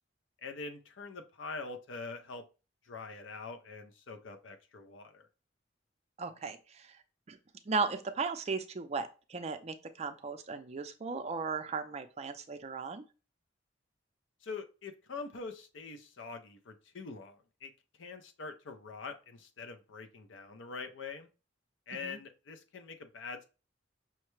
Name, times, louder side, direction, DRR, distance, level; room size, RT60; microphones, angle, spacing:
voice 1, 0.4-2.5 2.9-5.3 14.4-17.7 18.0-21.3 21.9-23.4, left 4 dB, 70° left, 7 dB, 0.5 m, -44 dB
voice 2, 6.2-7.0 7.3-7.4 7.7-13.0 22.0-22.2, right 4 dB, 35° right, 8 dB, 0.4 m, -36 dB
5.6 x 2.1 x 3.1 m, 0.33 s
head